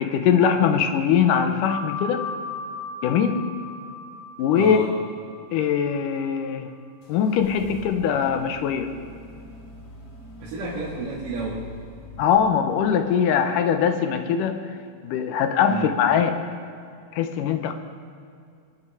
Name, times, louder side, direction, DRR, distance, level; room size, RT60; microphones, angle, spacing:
voice 1, 0.0-2.2 3.0-3.5 4.4-4.9 5.5-6.7 7.1-8.9 12.2-14.6 15.0-16.4 17.1-17.7, left 7 dB, 85° left, 7 dB, 2.4 m, -21 dB
sound 1, 1.7-6.8, left 3 dB, 10° right, 0.7 m, -37 dB
voice 2, 4.5-4.9 10.4-11.7 15.7-16.0, right 4 dB, 80° right, -7 dB, 3.5 m, -31 dB
sound 2, 7.0-12.9, left 1 dB, 55° left, 3.0 m, -43 dB
23.0 x 9.0 x 4.8 m, 2.3 s
omnidirectional pair, 3.7 m